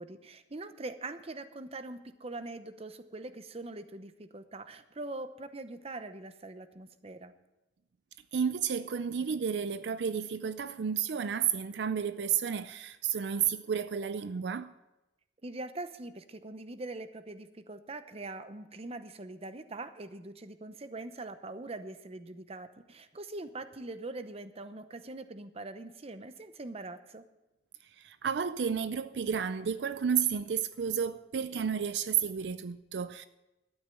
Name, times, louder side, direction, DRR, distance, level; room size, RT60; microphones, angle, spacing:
voice 1, 0.0-7.3 15.4-27.2, right 2 dB, 35° right, 0.8 m, -43 dB
voice 2, 8.3-14.7 28.0-33.3, right 7 dB, 75° right, 0.4 m, -31 dB
12.5 x 8.9 x 7.6 m
head